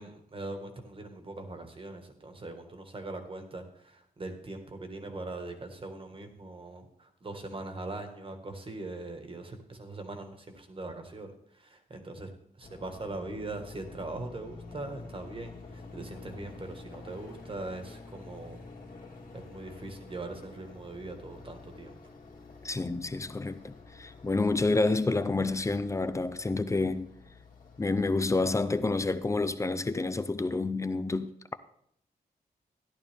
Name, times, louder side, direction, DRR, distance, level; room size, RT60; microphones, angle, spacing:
voice 1, 0.0-12.3 12.6-18.6 19.3-22.0, right 2 dB, 35° right, 1.6 m, -41 dB
sound 1, 12.6-29.5, left 3 dB, 60° left, 2.2 m, -49 dB
voice 2, 22.6-27.1 27.8-31.5, left 3 dB, 20° left, 0.5 m, -29 dB
13.5 x 11.0 x 3.5 m
wide cardioid pair, 120°, 16 cm